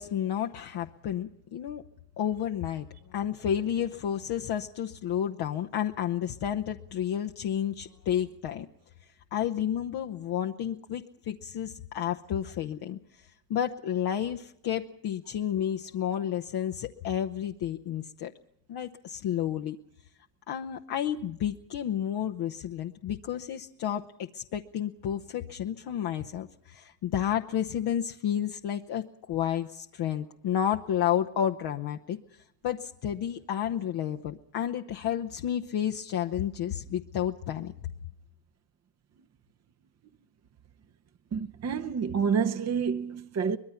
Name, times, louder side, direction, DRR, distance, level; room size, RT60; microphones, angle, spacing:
voice 1, 0.0-1.8 2.2-8.7 9.0-18.3 18.7-19.8 20.5-37.7, left 10 dB, 65° left, 1.0 m, -31 dB
voice 2, 41.3-43.6, right 6 dB, 40° right, 0.9 m, -28 dB
24.0 x 20.5 x 5.8 m
supercardioid pair, 85°, 42 cm